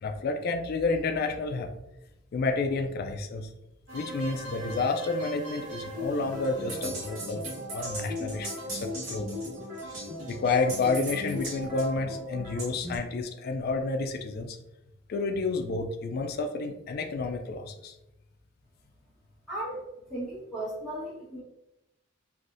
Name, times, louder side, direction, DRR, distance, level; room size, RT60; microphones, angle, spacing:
voice 1, 0.0-1.7 2.3-3.5 3.9-7.4 7.7-9.4 10.3-14.6 15.1-17.9, left 3 dB, 50° left, 5 dB, 0.3 m, -30 dB
sound 1, 3.9-13.0, equal, 70° right, 1.2 m, -37 dB
voice 2, 19.5-19.8 20.1-21.4, right 1 dB, ahead, -11 dB, 1.2 m, -35 dB
3.4 x 2.6 x 2.5 m, 0.90 s
head